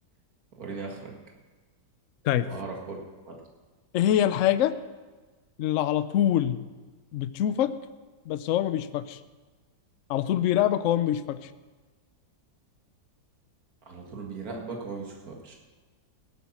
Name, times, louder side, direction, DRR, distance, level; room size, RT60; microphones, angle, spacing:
voice 1, 0.6-1.1 2.4-3.0 3.3-3.4 13.9-15.5, right 4 dB, 60° right, 0 dB, 2.3 m, -38 dB
voice 2, 3.9-4.7 5.6-6.6 7.1-7.7 8.3-9.2 10.1-11.5, left 11 dB, 65° left, 13 dB, 0.8 m, -24 dB
16.5 x 8.5 x 5.9 m, 1.3 s
omnidirectional pair, 1.8 m